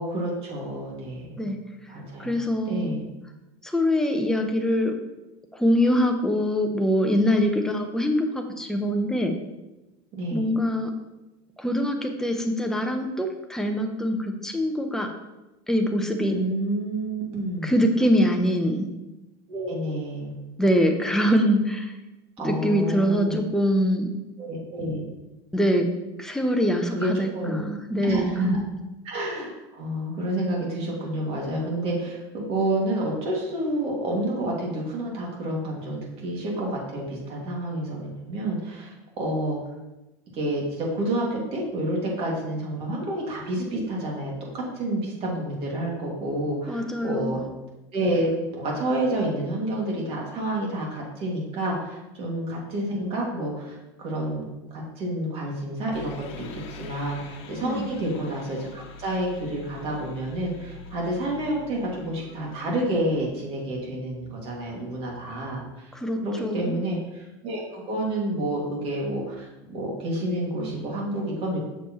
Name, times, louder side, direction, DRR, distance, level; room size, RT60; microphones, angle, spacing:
voice 1, 0.0-1.5 1.9-2.3 2.7-3.0 10.1-10.5 16.3-17.7 19.5-20.3 22.4-23.4 24.4-25.0 26.9-27.6 28.0-28.6 29.0-39.6 40.3-47.4 47.9-54.4 54.7-65.9 66.2-71.6, right 1 dB, 40° right, -2 dB, 2.3 m, -29 dB
voice 2, 2.2-2.9 3.6-5.0 5.5-9.4 10.3-10.9 11.6-15.1 15.7-16.4 17.6-18.9 20.6-21.9 22.4-24.1 25.5-25.9 26.2-28.6 46.7-47.4 57.6-57.9 65.9-66.8, equal, 5° left, 4 dB, 0.7 m, -24 dB
sound 1, 55.9-63.3, left 4 dB, 70° left, 1.0 m, -44 dB
7.0 x 6.7 x 3.1 m, 1.0 s
supercardioid pair, 140°, 15 cm